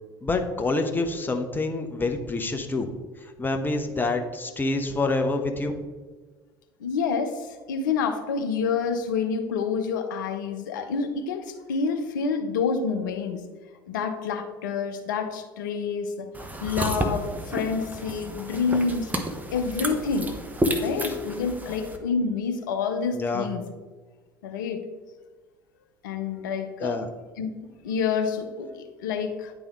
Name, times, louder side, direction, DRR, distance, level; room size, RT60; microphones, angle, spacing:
voice 1, 0.2-2.9 3.2-5.8 21.0-21.1 23.1-23.5 26.8-27.1, left 3 dB, 20° left, 5 dB, 0.8 m, -27 dB
voice 2, 6.8-13.4 13.9-16.3 16.6-19.1 19.5-20.3 20.8-23.6 24.4-24.8 26.0-27.0 27.4-29.5, left 5 dB, 70° left, 7 dB, 0.7 m, -28 dB
sound 1, 16.3-22.0, right 1 dB, 15° right, 0.9 m, -31 dB
9.9 x 3.5 x 3.5 m, 1.4 s
figure-of-eight pair, 65°, 11 cm